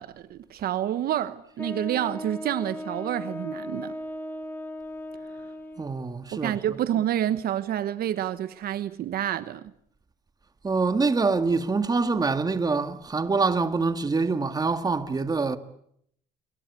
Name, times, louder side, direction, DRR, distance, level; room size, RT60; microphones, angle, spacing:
voice 1, 0.0-4.0 6.3-9.7, right 11 dB, 65° right, 1.2 m, -28 dB
Wind instrument woodwind instrument, 1.6-6.0, left 1 dB, 10° left, 2.8 m, -37 dB
voice 2, 5.8-6.8 10.6-15.6, right 4 dB, 20° right, 1.9 m, -25 dB
27.0 x 22.0 x 8.3 m
cardioid pair, 110°, 17 cm